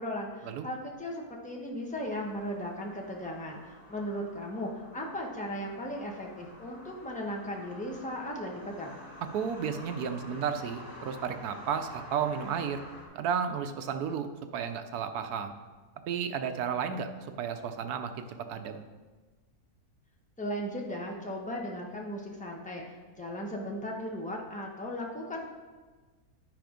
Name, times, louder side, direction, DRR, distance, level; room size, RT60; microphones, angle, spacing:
voice 1, 0.0-9.0 20.4-25.5, equal, 5° left, -1 dB, 0.9 m, -37 dB
sound 1, 1.9-13.1, left 1 dB, 60° left, 2.3 m, -49 dB
voice 2, 9.3-12.8 13.1-15.5 16.1-18.8, right 7 dB, 80° right, 7 dB, 1.2 m, -33 dB
9.3 x 5.1 x 5.1 m, 1.3 s
omnidirectional pair, 1.6 m